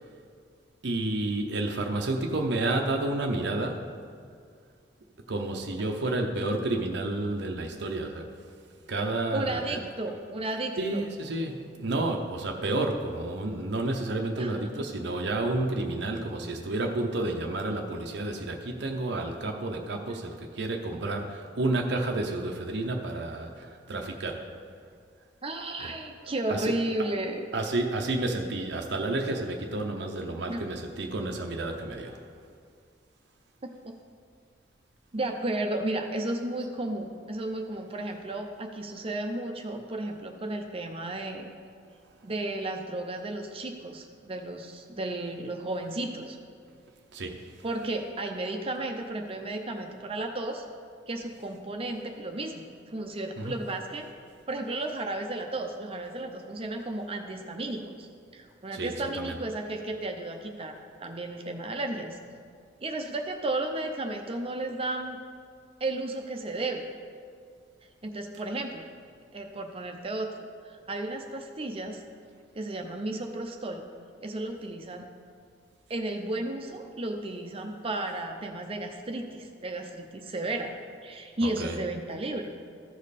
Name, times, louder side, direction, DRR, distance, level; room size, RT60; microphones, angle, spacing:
voice 1, 0.8-3.9 5.3-8.3 8.9-9.8 10.8-24.6 25.8-25.9 26.2-26.8 27.5-32.2 47.1-47.6 53.4-53.5 58.7-59.3 81.4-81.8, right 2 dB, 70° right, 2 dB, 0.7 m, -30 dB
voice 2, 9.3-11.1 14.4-14.7 25.4-27.5 30.5-30.6 33.6-33.7 35.1-41.5 42.2-46.4 47.6-50.6 51.1-52.6 52.9-54.1 54.5-58.1 58.3-62.2 62.8-65.2 65.8-66.9 68.0-68.9 69.3-70.4 70.6-72.0 72.5-73.9 74.2-75.0 75.9-80.7 81.0-82.6, right 2 dB, 30° right, 4 dB, 0.6 m, -33 dB
14.0 x 5.3 x 4.1 m, 2.2 s
head